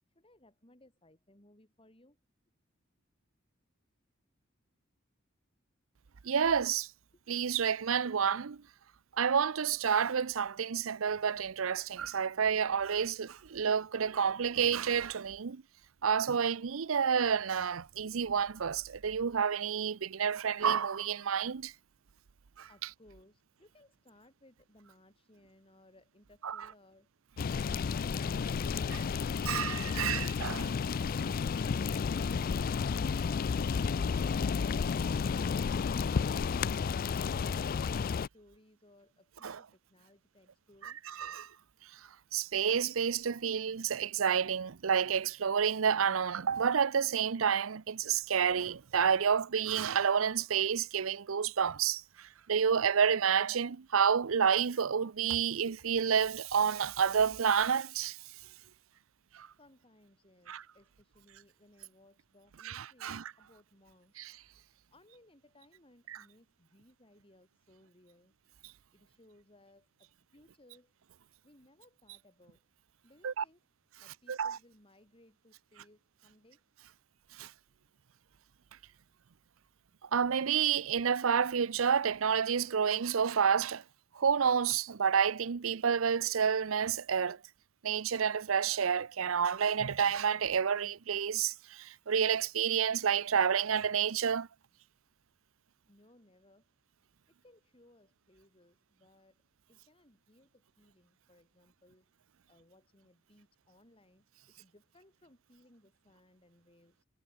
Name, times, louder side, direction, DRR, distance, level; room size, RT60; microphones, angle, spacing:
voice 1, 0.1-2.2 7.1-7.2 22.7-27.1 36.2-41.0 59.6-64.3 64.9-68.3 68.9-70.9 71.4-72.6 73.0-73.6 74.0-76.6 95.9-96.7 97.3-99.4 99.7-102.1 102.5-107.1, left 1 dB, 25° left, 4.8 m, -63 dB
voice 2, 6.2-6.9 7.3-8.6 9.2-15.6 16.0-21.7 22.6-22.7 26.4-26.6 29.5-30.7 39.4-39.6 40.8-41.5 42.3-58.2 59.3-59.5 60.5-60.6 62.6-63.3 64.2-64.3 73.2-73.4 74.3-74.6 77.4-77.5 80.0-83.8 84.1-87.4 87.8-94.5, right 7 dB, 75° right, 0.6 m, -29 dB
sound 1, 27.4-38.3, left 5 dB, 45° left, 0.3 m, -32 dB
head